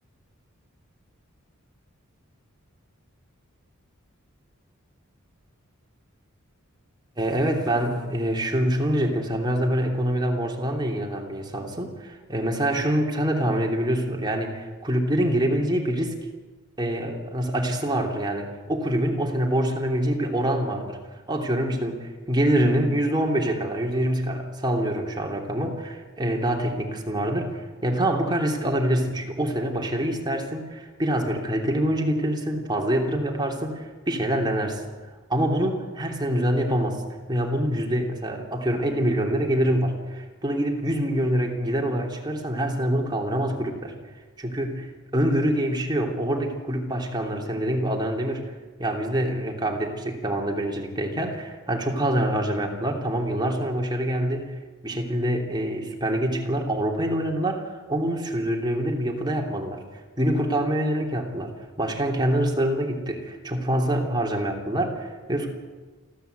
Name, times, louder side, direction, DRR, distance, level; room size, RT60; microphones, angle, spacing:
voice 1, 7.2-16.1 16.8-21.0 21.3-34.8 35.3-37.0 37.3-43.9 44.4-48.5 48.8-54.5 54.8-59.8 60.2-65.5, right 1 dB, 20° right, 1 dB, 3.2 m, -25 dB
28.5 x 13.0 x 8.3 m, 1.3 s
head